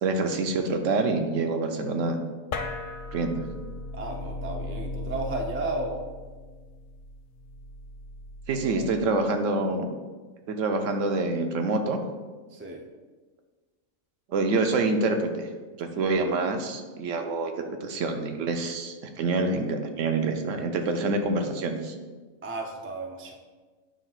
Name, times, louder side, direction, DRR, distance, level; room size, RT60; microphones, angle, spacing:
voice 1, 0.0-2.2 3.1-3.4 8.5-9.9 10.5-12.0 14.3-15.5 15.8-21.9, right 3 dB, 70° right, 5 dB, 1.0 m, -26 dB
sound 1, 2.5-9.3, left 2 dB, 60° left, 0.5 m, -38 dB
voice 2, 3.9-6.0 8.7-8.8 12.5-12.8 22.4-23.4, right 2 dB, 20° right, 1 dB, 0.3 m, -33 dB
8.8 x 5.7 x 2.4 m, 1.3 s
omnidirectional pair, 1.4 m